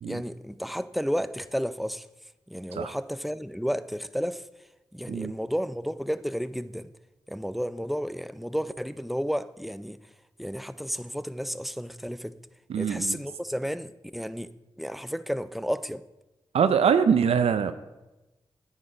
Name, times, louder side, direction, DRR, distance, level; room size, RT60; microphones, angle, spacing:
voice 1, 0.0-2.1 2.5-4.5 4.9-6.9 7.3-10.0 10.4-12.4 12.8-14.5 14.8-16.0, equal, ahead, 0.5 m, -32 dB
voice 2, 12.7-13.2 16.5-17.7, right 7 dB, 85° right, 0.5 m, -23 dB
9.7 x 8.9 x 5.0 m
cardioid pair, 45°, 10 cm